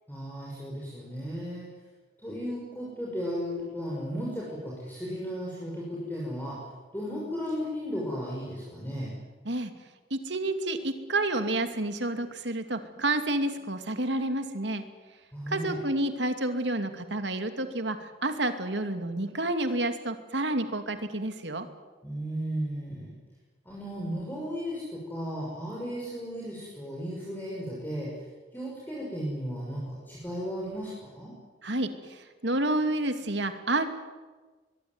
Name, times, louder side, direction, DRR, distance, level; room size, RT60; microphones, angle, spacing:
voice 1, 0.1-1.7 2.2-6.7 6.9-9.2 15.3-15.8 22.0-23.1 23.6-28.3 28.5-31.3, equal, 10° left, -4 dB, 6.4 m, -35 dB
voice 2, 10.1-14.9 15.5-21.7 31.6-33.9, right 2 dB, 75° right, 8 dB, 2.6 m, -29 dB
24.0 x 22.5 x 9.7 m, 1.3 s
head